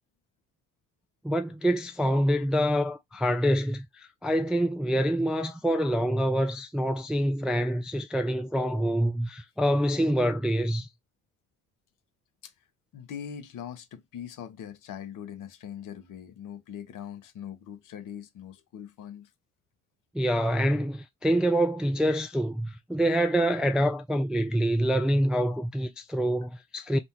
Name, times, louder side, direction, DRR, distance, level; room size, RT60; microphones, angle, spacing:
voice 1, 1.2-10.9 20.1-27.0, equal, ahead, 0.3 m, -26 dB
voice 2, 12.9-19.3, left 9 dB, 55° left, 0.7 m, -41 dB
2.6 x 2.1 x 2.8 m
hypercardioid pair, 45°, 39 cm